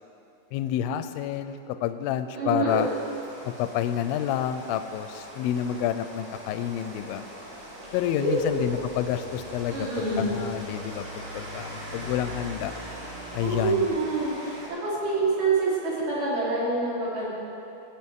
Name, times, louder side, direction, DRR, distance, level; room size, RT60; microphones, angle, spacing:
voice 1, 0.5-2.9 3.4-7.2 7.9-12.7 13.3-13.9, left 10 dB, 85° left, 10 dB, 2.2 m, -29 dB
voice 2, 2.4-2.8 7.9-8.5 9.7-10.3 13.4-17.3, right 3 dB, 70° right, -9 dB, 5.5 m, -26 dB
Rain, 2.7-14.7, equal, 45° right, 4.1 m, -41 dB
20.0 x 9.3 x 3.7 m, 2.9 s
omnidirectional pair, 4.5 m